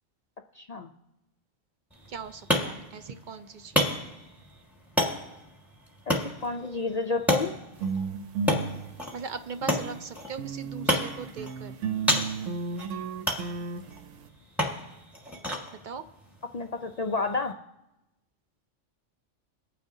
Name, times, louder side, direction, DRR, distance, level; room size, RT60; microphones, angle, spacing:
voice 1, 0.6-0.9 6.1-7.6 16.5-17.5, left 3 dB, 65° left, 5 dB, 0.4 m, -30 dB
sound 1, 1.9-17.5, equal, ahead, 1.5 m, -32 dB
voice 2, 2.1-4.0 9.1-11.8 15.8-16.0, right 5 dB, 55° right, 10 dB, 0.6 m, -39 dB
sound 2, 7.7-10.0 10.4-14.3, right 5 dB, 85° right, 1.0 m, -34 dB
23.0 x 9.1 x 2.7 m, 0.95 s
omnidirectional pair, 1.2 m